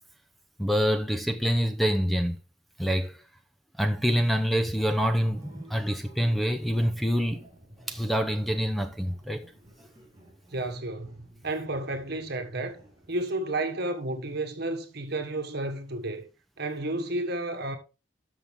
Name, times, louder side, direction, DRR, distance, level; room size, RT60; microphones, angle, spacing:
voice 1, 0.6-2.4 2.8-3.2 3.8-7.4 7.9-9.4, equal, ahead, 0.7 m, -26 dB
sound 1, 4.9-13.4, right 1 dB, 15° right, 4.5 m, -53 dB
voice 2, 10.5-12.8 13.1-16.3 16.6-17.8, right 2 dB, 55° right, 1.4 m, -32 dB
13.0 x 5.7 x 3.5 m
head